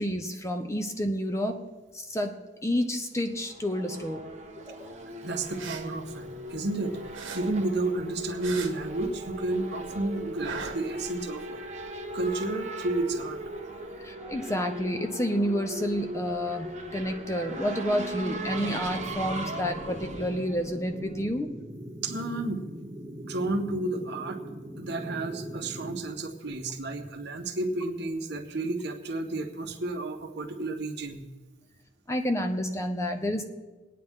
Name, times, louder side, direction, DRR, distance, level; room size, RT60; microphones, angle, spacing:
voice 1, 0.0-1.7 1.9-4.2 4.7-5.0 14.0-21.5 32.1-33.4, equal, 15° left, 6 dB, 0.8 m, -30 dB
Race car auto racing / Accelerating revving vroom, 3.2-21.4, right 1 dB, 35° right, 1.4 m, -38 dB
voice 2, 5.2-7.0 7.3-11.6 12.1-13.4 22.0-22.6 23.2-24.4 24.8-31.2, right 2 dB, 55° right, 3 dB, 1.3 m, -31 dB
sound 1, 5.6-6.8 7.1-9.5 9.8-11.4, right 5 dB, 75° right, 1.5 m, -41 dB
sound 2, 18.5-26.0, equal, 20° right, 1.0 m, -41 dB
23.5 x 9.4 x 3.7 m, 1.3 s
head